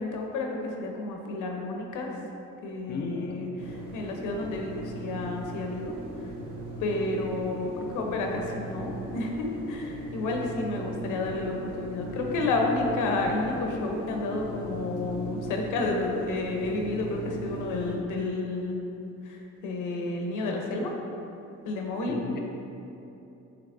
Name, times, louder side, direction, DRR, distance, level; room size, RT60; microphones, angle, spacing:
voice 1, 0.0-2.1 2.6-5.9 6.8-18.8 19.3-19.4 19.6-20.9 21.6-22.2, left 2 dB, 85° left, 1 dB, 0.7 m, -30 dB
voice 2, 2.9-3.7 22.1-22.4, left 3 dB, 35° left, 1 dB, 0.5 m, -35 dB
sound 1, 3.6-18.0, right 1 dB, 80° right, 0.8 m, -38 dB
6.8 x 3.0 x 2.5 m, 2.9 s
cardioid pair, 90°, 30 cm